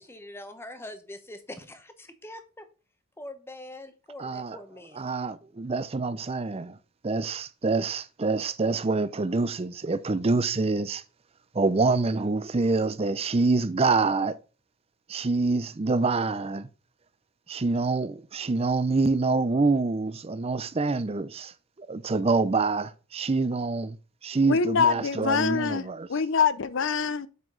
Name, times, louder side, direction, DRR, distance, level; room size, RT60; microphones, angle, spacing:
voice 1, 0.0-2.7 3.2-5.1, left 1 dB, 10° left, 0.9 m, -43 dB
voice 2, 4.2-4.6 4.9-6.8 7.0-11.0 11.5-14.3 15.1-16.7 17.5-21.5 21.8-24.0 24.2-26.1, right 3 dB, 25° right, 0.5 m, -26 dB
voice 3, 24.5-27.3, left 5 dB, 55° left, 0.6 m, -25 dB
7.4 x 5.8 x 3.8 m
head